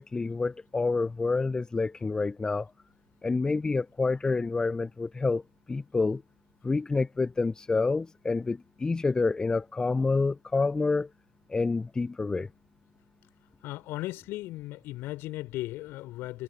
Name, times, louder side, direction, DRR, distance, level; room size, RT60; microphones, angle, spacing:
voice 1, 0.0-2.7 3.2-5.4 5.7-6.2 6.6-11.1 11.5-12.5, left 3 dB, 15° left, 1.2 m, -28 dB
voice 2, 13.6-16.4, left 17 dB, 50° left, 5.2 m, -36 dB
figure-of-eight pair, 75°, 5 cm